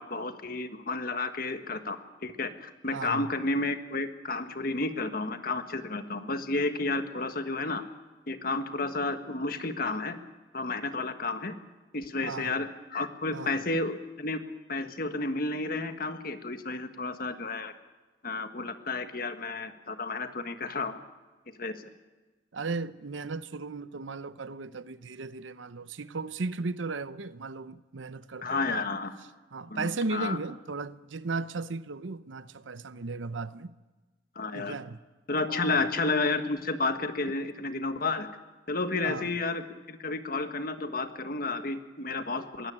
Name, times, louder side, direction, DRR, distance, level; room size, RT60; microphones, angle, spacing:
voice 1, 0.0-7.8 8.3-10.2 10.5-11.6 11.9-14.4 14.7-17.7 18.2-21.0 21.5-21.9 28.4-29.1 29.7-30.4 34.3-34.7 35.3-38.3 38.7-42.7, left 3 dB, 50° left, 1.5 m, -31 dB
voice 2, 2.9-3.3 12.2-12.6 13.3-13.6 22.5-28.9 29.5-33.8 34.5-35.0 35.5-35.9 39.0-39.3, right 3 dB, 90° right, 0.8 m, -36 dB
22.0 x 17.0 x 8.8 m
head